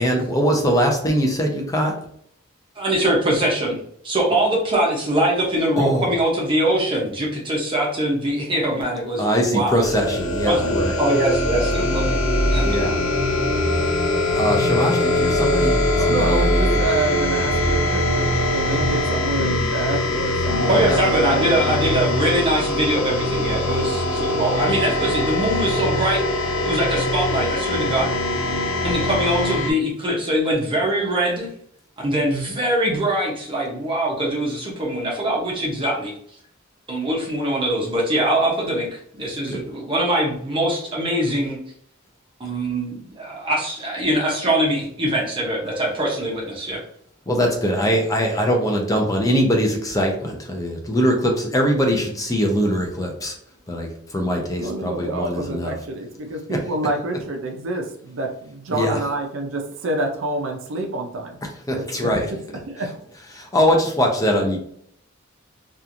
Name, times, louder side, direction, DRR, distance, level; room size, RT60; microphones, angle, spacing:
voice 1, 0.0-1.9 5.8-6.1 9.2-10.9 12.6-13.0 14.4-15.8 16.1-16.8 20.7-21.0 39.5-39.6 47.3-53.3 53.7-55.7 56.5-56.6 58.7-59.0 61.7-62.3 63.3-64.6, equal, 15° left, 1 dB, 0.5 m, -22 dB
voice 2, 2.8-9.8 10.4-12.2 12.5-12.6 20.7-26.2 26.6-28.1 28.8-31.5 32.0-36.1 36.9-41.6 42.4-46.8, right 1 dB, 25° right, -3 dB, 0.6 m, -22 dB
sound 1, 9.8-29.7, left 1 dB, 80° left, 0.5 m, -22 dB
voice 3, 16.0-22.4 47.7-48.0 54.6-61.4 61.7-63.0, right 2 dB, 70° right, 2 dB, 0.5 m, -28 dB
2.9 x 2.4 x 2.5 m, 0.64 s
head